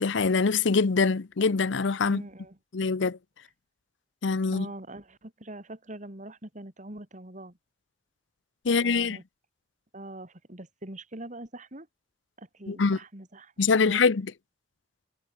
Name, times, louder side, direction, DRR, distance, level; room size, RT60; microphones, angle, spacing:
voice 1, 0.0-2.2 2.7-3.2 4.2-4.7 8.6-9.2 12.7-13.0 13.6-14.3, left 4 dB, 85° left, 0.7 m, -24 dB
voice 2, 2.0-2.6 4.5-7.6 8.7-9.2 9.9-11.9 12.4-14.0, right 1 dB, 40° right, 3.3 m, -43 dB
head